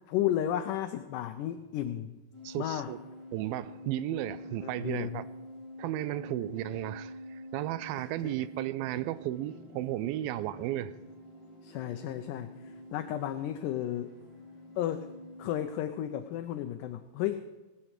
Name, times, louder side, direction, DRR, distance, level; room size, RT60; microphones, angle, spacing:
voice 1, 0.1-2.2 2.6-2.9 4.6-5.3 8.2-8.3 11.6-14.1 14.8-15.1 15.4-17.4, left 11 dB, 80° left, 1.9 m, -33 dB
sound 1, 2.3-15.6, left 1 dB, 10° left, 2.0 m, -47 dB
voice 2, 2.4-3.0 3.3-5.2 5.8-11.0, right 14 dB, 85° right, 2.4 m, -34 dB
19.0 x 7.1 x 6.5 m
omnidirectional pair, 4.2 m